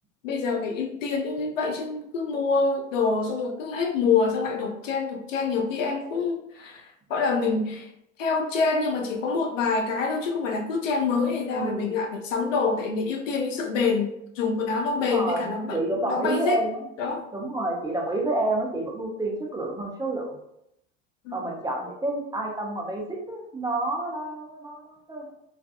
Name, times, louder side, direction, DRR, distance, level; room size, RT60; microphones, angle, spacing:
voice 1, 0.2-7.9 8.2-15.8 16.1-16.6 17.0-17.2 21.2-21.4, left 4 dB, 90° left, 3 dB, 0.5 m, -26 dB
voice 2, 11.5-11.9 15.1-16.8 17.3-20.4 21.3-25.2, right 2 dB, 10° right, -1 dB, 0.5 m, -29 dB
2.5 x 2.3 x 2.3 m, 0.77 s
hypercardioid pair, 85°, 37 cm